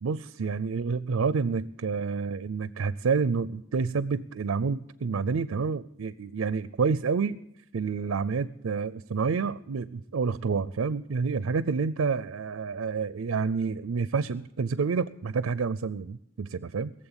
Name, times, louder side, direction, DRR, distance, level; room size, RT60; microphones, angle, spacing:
voice 1, 0.0-7.4 7.7-16.9, right 5 dB, 90° right, 16 dB, 0.5 m, -28 dB
17.5 x 7.6 x 8.8 m, 0.79 s
head